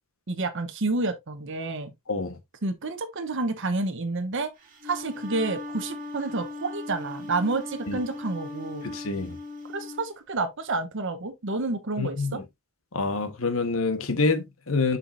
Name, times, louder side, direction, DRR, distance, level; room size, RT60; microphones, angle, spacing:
voice 1, 0.3-1.9 2.6-4.5 4.8-8.9 9.7-12.4, right 3 dB, 60° right, 0.9 m, -29 dB
Wind instrument woodwind instrument, 4.6-10.1, left 2 dB, 40° right, 2.0 m, -38 dB
voice 2, 8.8-9.4 12.0-12.4 12.9-15.0, left 3 dB, 70° left, 1.2 m, -26 dB
7.2 x 5.7 x 2.5 m
head